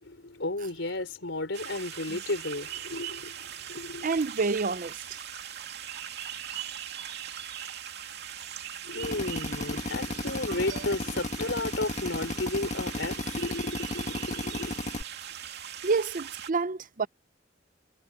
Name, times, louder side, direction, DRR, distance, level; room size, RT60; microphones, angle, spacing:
voice 1, 0.0-4.1 8.8-14.7, left 2 dB, 75° left, 4.6 m, -33 dB
sound 1, 1.5-16.5, right 9 dB, 60° right, 2.6 m, -40 dB
voice 2, 4.0-5.2 10.5-10.8 15.8-17.1, right 4 dB, 45° right, 0.6 m, -29 dB
Drill, 9.0-15.0, left 2 dB, 40° left, 1.6 m, -34 dB
head